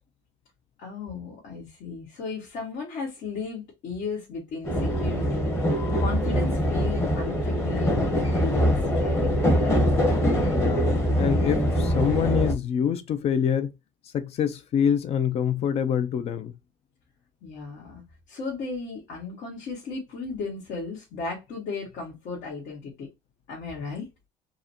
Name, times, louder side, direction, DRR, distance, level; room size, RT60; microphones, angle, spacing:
voice 1, 0.8-9.9 17.4-18.0 18.3-23.1 23.5-24.1, left 4 dB, 65° left, 1.8 m, -35 dB
sound 1, 4.6-12.5, equal, 15° left, 1.0 m, -23 dB
voice 2, 10.5-13.7 14.1-16.5, left 8 dB, 45° left, 0.6 m, -26 dB
4.7 x 2.2 x 2.9 m
cardioid pair, 145°, 15 cm